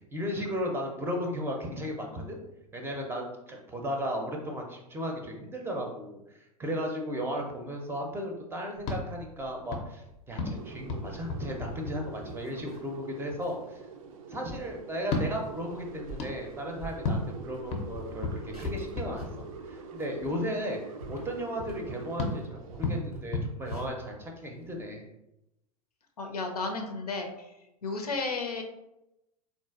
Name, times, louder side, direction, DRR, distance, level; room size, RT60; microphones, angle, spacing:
voice 1, 0.1-2.4 2.7-13.8 14.3-20.8 21.1-25.1, equal, 10° right, 2 dB, 0.6 m, -35 dB
sound 1, 8.8-12.6 15.0-19.8 22.2-24.6, left 3 dB, 35° left, 0.6 m, -36 dB
sound 2, 10.5-23.0, right 5 dB, 65° right, 0.4 m, -45 dB
sound 3, 12.2-13.0 13.4-13.6 14.1-14.2 14.5-14.8 15.1-15.4 15.9-17.6 17.8-19.4 19.8-22.0 22.3-22.4 22.7-24.8, right 1 dB, 90° right, 0.9 m, -47 dB
voice 2, 26.2-27.5 27.8-28.6, left 3 dB, 80° left, 4 dB, 0.6 m, -33 dB
3.7 x 2.5 x 2.4 m, 0.89 s
figure-of-eight pair, 90°, 19 cm